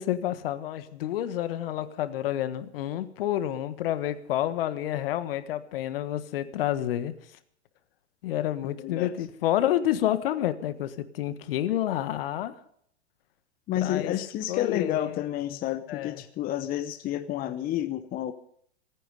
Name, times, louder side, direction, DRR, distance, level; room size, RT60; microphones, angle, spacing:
voice 1, 0.0-7.1 8.2-12.5 13.8-14.1 14.5-15.2 15.9-16.2, left 12 dB, 60° left, 12 dB, 1.4 m, -29 dB
voice 2, 8.6-9.1 13.7-18.3, left 12 dB, 25° left, 10 dB, 0.8 m, -30 dB
24.0 x 9.3 x 5.3 m, 0.66 s
hypercardioid pair, 110°, 33 cm